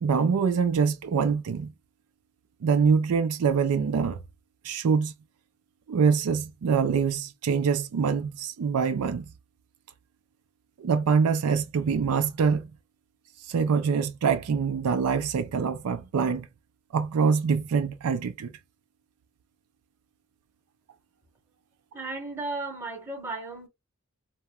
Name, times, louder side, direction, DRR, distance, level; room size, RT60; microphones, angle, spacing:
voice 1, 0.0-1.7 2.6-4.2 4.6-5.1 5.9-9.3 10.8-12.7 13.5-16.5 16.9-18.5, right 6 dB, 80° right, 0.4 m, -24 dB
voice 2, 21.9-23.7, right 3 dB, 10° right, 0.9 m, -35 dB
2.9 x 2.2 x 2.3 m
head